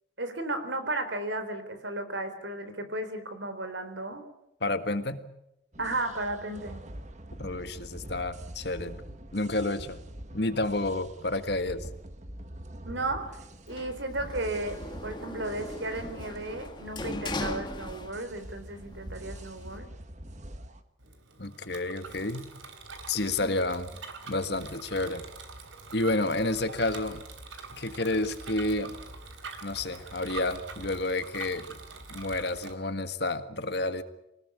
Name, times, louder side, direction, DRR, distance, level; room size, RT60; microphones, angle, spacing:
voice 1, 0.2-4.2 5.8-6.8 12.9-13.4 13.7-19.9 23.4-23.6, right 2 dB, 70° right, 9 dB, 4.0 m, -34 dB
voice 2, 4.6-5.3 7.4-9.0 9.3-10.0 10.3-11.9 21.4-22.5 23.1-23.9 24.3-25.2 25.9-27.2 27.7-29.0 29.6-31.8 32.1-34.0, left 2 dB, 55° left, 10 dB, 1.7 m, -30 dB
sound 1, 5.7-20.8, right 1 dB, 35° right, 1.6 m, -45 dB
Sliding door, 13.7-18.5 18.8-19.8, left 2 dB, 25° left, 1.8 m, -39 dB
Bicycle, 21.0-32.7, right 4 dB, 85° right, 3.5 m, -44 dB
24.5 x 19.5 x 8.5 m, 0.83 s
head